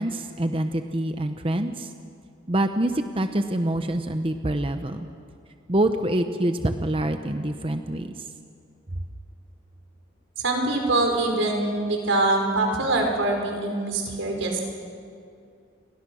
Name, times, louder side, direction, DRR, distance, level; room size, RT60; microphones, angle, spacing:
voice 1, 0.0-1.9 2.5-5.1 5.7-8.1, right 1 dB, 30° right, 7 dB, 0.9 m, -26 dB
voice 2, 10.4-14.6, right 2 dB, 90° right, 2 dB, 5.3 m, -24 dB
30.0 x 23.5 x 6.4 m, 2.4 s
head